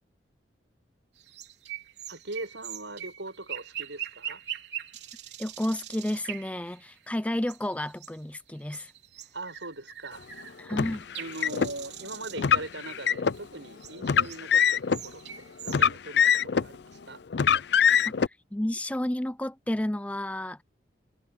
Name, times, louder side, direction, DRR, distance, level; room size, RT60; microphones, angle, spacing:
sound 1, 1.2-8.2 8.5-15.8, right 10 dB, 65° right, 4.0 m, -42 dB
voice 1, 2.1-4.4 9.3-10.5 11.2-17.2, right 2 dB, 85° right, 7.6 m, -41 dB
voice 2, 5.4-8.9 10.6-11.1 18.0-20.6, left 1 dB, 5° left, 0.5 m, -31 dB
Car, 10.7-11.7 12.4-13.4 14.0-15.0 15.7-16.7 17.3-18.3, left 7 dB, 65° left, 0.5 m, -23 dB
head